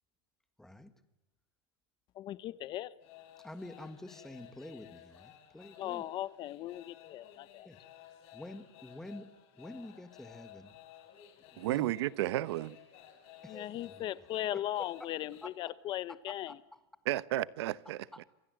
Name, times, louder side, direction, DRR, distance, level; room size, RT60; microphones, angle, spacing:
voice 1, 0.6-0.9 3.4-6.0 7.6-7.8 8.3-9.3 9.5-10.8 11.5-11.9 13.4-14.0 15.4-15.5 16.5-16.6 18.1-18.2, left 1 dB, 5° left, 1.6 m, -48 dB
voice 2, 2.1-2.9 5.8-7.7 13.5-16.6, left 13 dB, 35° left, 0.9 m, -38 dB
sound 1, 3.0-15.5, left 11 dB, 50° left, 6.0 m, -56 dB
voice 3, 11.6-12.8 17.1-18.2, right 15 dB, 80° right, 0.9 m, -33 dB
27.5 x 26.0 x 7.8 m
supercardioid pair, 150°, 14 cm